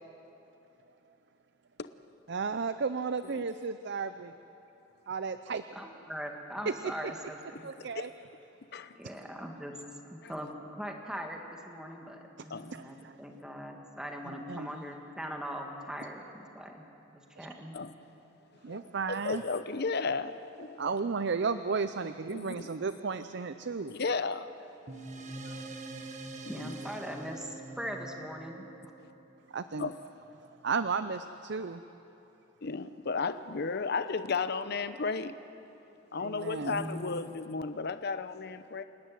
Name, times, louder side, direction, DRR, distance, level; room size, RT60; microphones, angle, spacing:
voice 1, 2.3-4.3 5.1-5.6 6.7-7.1 7.6-8.1 9.0-9.1 12.7-13.1 14.5-14.7 17.4-17.5 18.6-19.4 20.8-23.9 29.5-29.9 30.6-31.8 36.2-36.7, right 5 dB, 60° right, 11 dB, 0.6 m, -33 dB
voice 2, 5.8-7.7 9.0-9.7 10.0-16.9 17.4-17.8 26.5-28.7 36.7-37.2, equal, 5° right, 2 dB, 2.0 m, -41 dB
voice 3, 19.1-20.9 22.3-22.7 23.9-24.5 24.9-25.0 25.4-25.6 26.4-26.7 29.8-30.0 32.6-35.3 36.1-38.8, left 4 dB, 60° left, 12 dB, 0.8 m, -34 dB
sound 1, 24.9-29.7, right 2 dB, 40° right, 1.4 m, -44 dB
28.5 x 12.5 x 9.3 m, 2.9 s
head